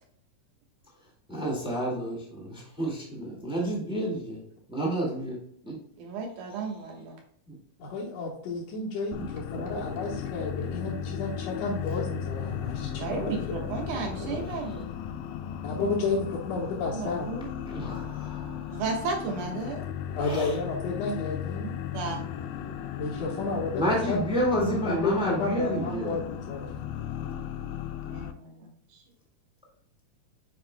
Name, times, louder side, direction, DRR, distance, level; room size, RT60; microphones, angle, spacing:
voice 1, 1.3-4.4 4.7-5.4 5.6-5.7 7.5-7.6 14.5-14.6 17.7-18.8 20.2-20.6 22.6-22.7 23.8-26.2, equal, ahead, -2 dB, 1.2 m, -30 dB
voice 2, 6.0-7.1 13.0-14.8 16.9-17.5 18.7-19.8 20.3-20.4 21.9-22.2 28.1-29.0, right 4 dB, 70° right, 1 dB, 2.7 m, -34 dB
voice 3, 7.8-13.7 15.6-17.3 20.2-21.7 23.0-24.2 24.6-26.7, left 3 dB, 60° left, -6 dB, 2.1 m, -32 dB
sound 1, 9.1-28.3, left 9 dB, 80° left, 1.9 m, -36 dB
sound 2, 9.5-14.6, right 2 dB, 85° right, 0.9 m, -43 dB
9.1 x 4.9 x 2.2 m, 0.67 s
omnidirectional pair, 3.8 m